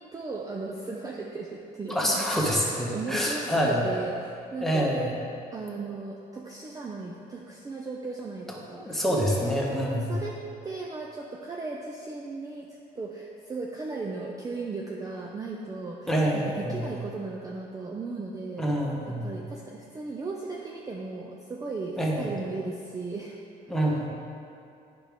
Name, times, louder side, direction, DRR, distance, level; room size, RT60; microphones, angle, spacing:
voice 1, 0.0-5.0 5.5-9.4 10.0-18.6 19.1-23.4 23.7-23.8, right 3 dB, 20° right, -1 dB, 0.5 m, -37 dB
voice 2, 1.9-3.8 4.6-5.1 8.7-10.2 16.1-16.9 18.6-19.4 22.0-22.3 23.7-24.1, equal, ahead, -3 dB, 1.3 m, -26 dB
8.6 x 6.0 x 3.6 m, 2.5 s
cardioid pair, 110°, 17 cm